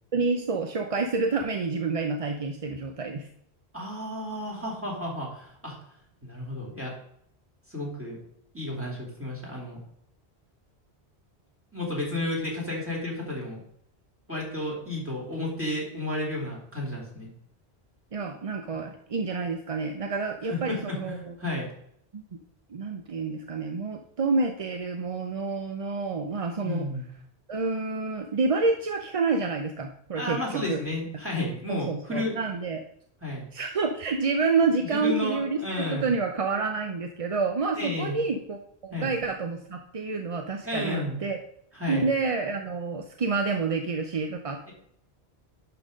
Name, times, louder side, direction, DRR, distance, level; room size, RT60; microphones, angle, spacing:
voice 1, 0.1-3.3 18.1-21.3 22.1-22.2 22.7-26.9 27.5-30.8 31.7-32.8 33.5-41.4 41.9-44.7, right 4 dB, 40° right, 4 dB, 0.6 m, -28 dB
voice 2, 3.7-5.8 6.2-6.9 7.7-8.2 8.5-9.8 11.7-13.6 14.3-17.3 20.5-21.7 26.6-27.1 30.2-32.4 33.2-33.5 34.9-36.1 37.8-38.2 38.9-39.1 40.6-41.2 41.7-42.1, left 1 dB, 10° right, -3 dB, 2.7 m, -32 dB
11.5 x 4.0 x 5.1 m, 0.70 s
omnidirectional pair, 1.1 m